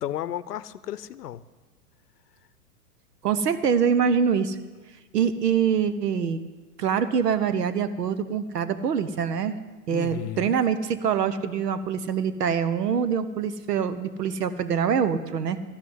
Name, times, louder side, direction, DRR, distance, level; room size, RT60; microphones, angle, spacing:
voice 1, 0.0-1.4 9.9-10.6, left 11 dB, 85° left, 17 dB, 0.7 m, -33 dB
voice 2, 3.2-4.6 5.1-6.4 6.8-9.6 9.9-15.6, right 7 dB, 85° right, 13 dB, 1.0 m, -24 dB
13.5 x 6.2 x 9.6 m, 1.3 s
hypercardioid pair, 120°, 46 cm